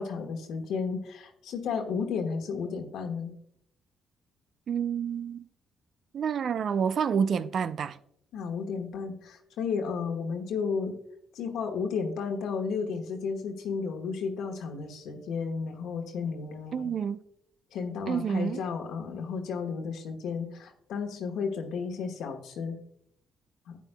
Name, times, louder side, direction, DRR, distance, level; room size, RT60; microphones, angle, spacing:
voice 1, 0.0-3.3 8.3-11.0 11.3-16.9 17.7-22.8 23.7-23.8, left 5 dB, 75° left, 1.3 m, -33 dB
voice 2, 4.7-5.4 6.1-8.0 16.7-17.2 18.1-18.6, right 7 dB, 60° right, 0.4 m, -28 dB
12.0 x 8.3 x 2.2 m
hypercardioid pair, 50°, 0 cm